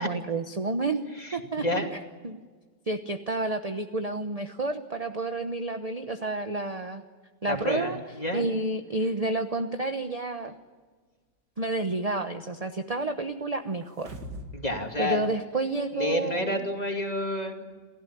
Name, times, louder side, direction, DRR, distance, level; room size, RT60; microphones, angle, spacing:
voice 1, 0.0-1.8 2.2-2.4 2.9-7.0 7.4-8.0 8.3-10.5 11.6-14.2 15.0-16.6, right 2 dB, 25° right, 7 dB, 0.9 m, -30 dB
voice 2, 1.2-1.9 7.5-8.5 14.5-15.2 15.9-17.8, left 1 dB, 25° left, 3 dB, 2.7 m, -30 dB
sound 1, 13.8-14.7 15.0-15.1, equal, 80° right, 2.7 m, -40 dB
28.5 x 15.5 x 10.0 m, 1.4 s
omnidirectional pair, 1.8 m